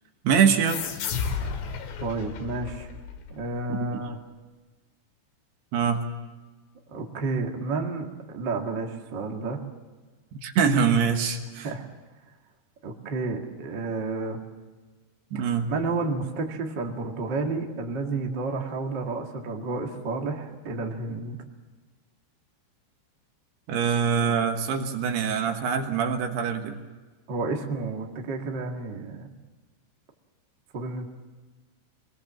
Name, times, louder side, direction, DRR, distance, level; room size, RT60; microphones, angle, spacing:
voice 1, 0.2-0.9 3.7-3.9 5.7-6.0 10.4-11.7 15.3-15.7 23.7-26.8, right 6 dB, 65° right, 5 dB, 3.2 m, -24 dB
sound 1, 0.7-3.9, left 6 dB, 80° left, 4.4 m, -33 dB
voice 2, 2.0-2.9 3.3-4.2 6.9-9.6 11.6-11.9 12.8-14.4 15.3-21.4 27.3-29.3 30.7-31.1, right 3 dB, 45° right, 1 dB, 1.4 m, -31 dB
24.5 x 20.5 x 7.5 m, 1.3 s
omnidirectional pair, 5.5 m